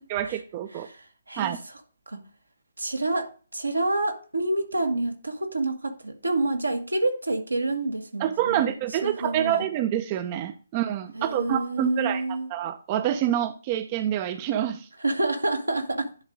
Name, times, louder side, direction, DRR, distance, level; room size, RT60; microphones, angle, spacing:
voice 1, 0.1-0.9 1.4-1.6 8.2-14.9, right 11 dB, 30° right, 0.5 m, -27 dB
voice 2, 0.8-1.5 2.1-2.2 2.8-8.7 9.0-9.6 11.1-12.5 15.0-16.1, right 2 dB, 80° right, 1.4 m, -28 dB
10.5 x 3.7 x 5.1 m
figure-of-eight pair, 135°, 0 cm